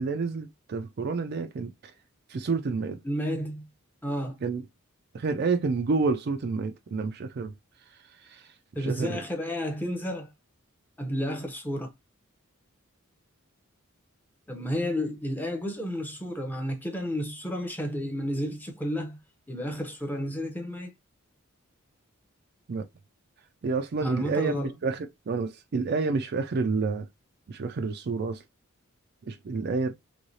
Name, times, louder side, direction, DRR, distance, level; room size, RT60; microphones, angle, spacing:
voice 1, 0.0-1.7 2.3-3.0 4.4-4.6 5.1-7.5 8.2-8.4 8.8-9.2 22.7-22.9 23.6-27.1 27.5-28.4 29.2-29.9, right 4 dB, 50° right, 0.4 m, -29 dB
voice 2, 3.0-3.7 4.0-4.3 8.7-10.3 11.0-11.9 14.5-19.2 19.5-20.9 24.0-24.7, equal, 10° left, 0.7 m, -31 dB
3.1 x 2.8 x 2.7 m
head